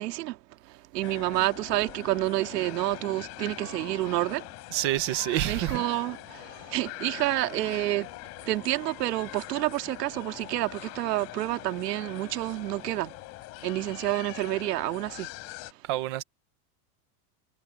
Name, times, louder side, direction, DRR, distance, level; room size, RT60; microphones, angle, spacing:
voice 1, 0.0-4.5 5.5-8.1 8.4-13.1 13.6-15.3 15.7-15.8, right 17 dB, 90° right, 1.9 m, -29 dB
sound 1, 1.0-15.7, left 21 dB, 35° left, 2.9 m, -43 dB
voice 2, 4.7-5.8 15.9-16.2, right 15 dB, 20° right, 0.4 m, -27 dB
supercardioid pair, 180°, 47 cm